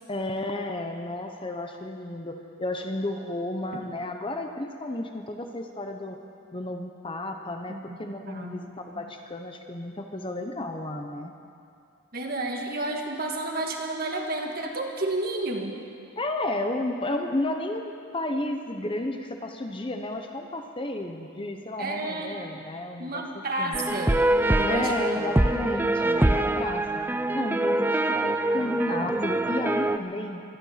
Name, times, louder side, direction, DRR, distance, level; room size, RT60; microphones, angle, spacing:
voice 1, 0.1-6.2 6.5-11.3 16.2-23.2 23.6-23.8 24.7-27.0 27.3-30.4, left 1 dB, 25° left, 4 dB, 0.8 m, -32 dB
voice 2, 8.2-9.1 12.1-15.8 21.8-22.5 23.0-25.2, right 2 dB, 45° right, 2 dB, 1.6 m, -31 dB
sound 1, 23.7-30.0, right 1 dB, 10° right, 0.3 m, -24 dB
24.5 x 10.5 x 5.8 m, 2.5 s
head